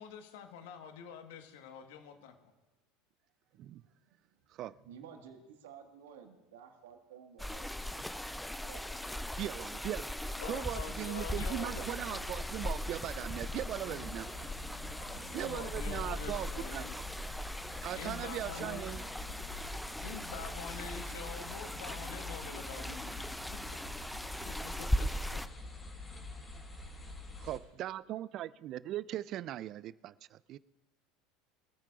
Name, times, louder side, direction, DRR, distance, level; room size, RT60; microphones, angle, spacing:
voice 1, 0.0-2.3 10.4-12.2 13.8-14.1 15.4-17.0 18.0-18.9 20.0-23.6 24.4-25.4, left 7 dB, 70° left, 6 dB, 1.5 m, -46 dB
voice 2, 4.8-9.1, right 7 dB, 75° right, 4 dB, 1.8 m, -54 dB
sound 1, 7.4-25.5, left 1 dB, 5° left, 0.5 m, -39 dB
voice 3, 9.4-14.3 15.3-16.8 17.8-19.0 27.4-30.6, right 13 dB, 50° right, 19 dB, 0.4 m, -39 dB
sound 2, 11.3-27.6, left 2 dB, 25° left, 4.4 m, -46 dB
voice 4, 14.0-14.6 14.9-16.5 17.6-19.7, left 3 dB, 50° left, -1 dB, 3.6 m, -56 dB
23.5 x 13.5 x 2.5 m, 1.1 s
hypercardioid pair, 80°, 0 cm